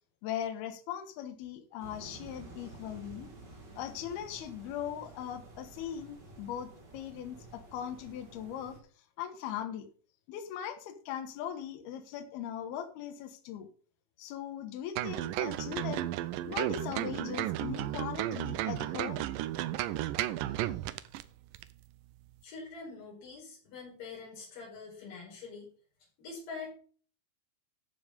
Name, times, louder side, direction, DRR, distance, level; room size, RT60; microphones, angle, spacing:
voice 1, 0.2-3.3 3.8-8.8 9.2-9.9 10.3-13.7 14.2-16.1 16.5-19.3, left 10 dB, 75° left, 7 dB, 3.1 m, -39 dB
sound 1, 1.8-8.8, right 3 dB, 30° right, 2.4 m, -51 dB
sound 2, 15.0-21.2 21.5-21.7, right 14 dB, 85° right, 2.0 m, -33 dB
voice 2, 22.4-25.7 26.2-26.7, left 4 dB, 60° left, -3 dB, 6.4 m, -45 dB
14.0 x 5.4 x 5.2 m, 0.43 s
omnidirectional pair, 4.6 m